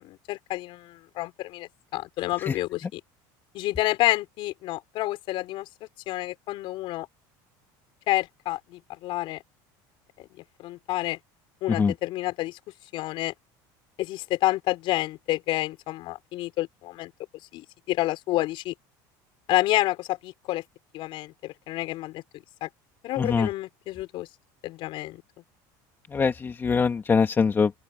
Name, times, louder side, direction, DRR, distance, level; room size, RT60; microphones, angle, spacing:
voice 1, 0.0-3.0 3.5-5.7 6.1-7.1 8.1-9.4 10.2-10.3 10.6-11.2 11.6-12.6 12.9-13.3 14.0-17.1 17.5-18.7 19.5-20.6 20.9-22.2 22.6-22.7 23.0-24.3 24.6-25.2, left 17 dB, 55° left, 5.2 m, -29 dB
voice 2, 23.2-23.5 26.1-27.7, left 5 dB, 20° left, 2.0 m, -23 dB
supercardioid pair, 130°, 10 cm